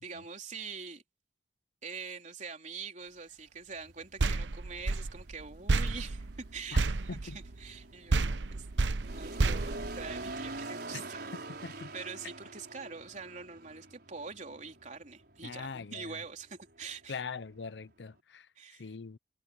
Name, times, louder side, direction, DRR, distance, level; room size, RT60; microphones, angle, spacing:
voice 1, 0.0-1.0 1.8-8.7 9.0-11.3 11.9-17.2 18.6-18.9, right 5 dB, 45° right, 3.8 m, -44 dB
sound 1, 3.7-18.2, right 2 dB, 60° right, 5.5 m, -46 dB
sound 2, 4.2-7.8 8.1-10.6, right 3 dB, 90° right, 0.8 m, -31 dB
voice 2, 11.6-11.9 15.4-16.2 17.1-19.2, left 5 dB, 75° left, 0.6 m, -42 dB
head